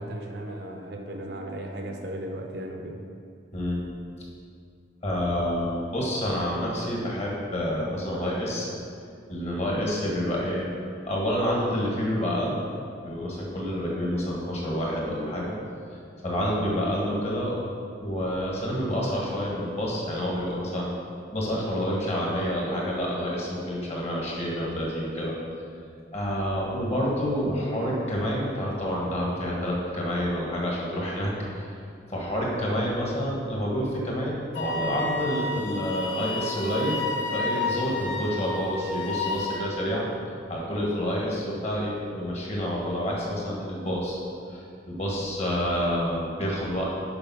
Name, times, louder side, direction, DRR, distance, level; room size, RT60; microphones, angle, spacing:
voice 1, 0.0-3.0, right 1 dB, 60° right, 3 dB, 0.7 m, -36 dB
voice 2, 5.0-8.7 9.3-10.7 11.0-12.6 13.0-15.5 16.2-17.5 18.0-20.9 21.3-25.3 26.1-31.7 32.1-37.0 37.3-40.1 40.5-44.2 44.5-46.9, equal, 35° left, -3 dB, 1.5 m, -28 dB
Wind instrument woodwind instrument, 34.5-39.7, left 3 dB, 85° left, 0.7 m, -31 dB
6.9 x 5.2 x 5.5 m, 2.4 s
head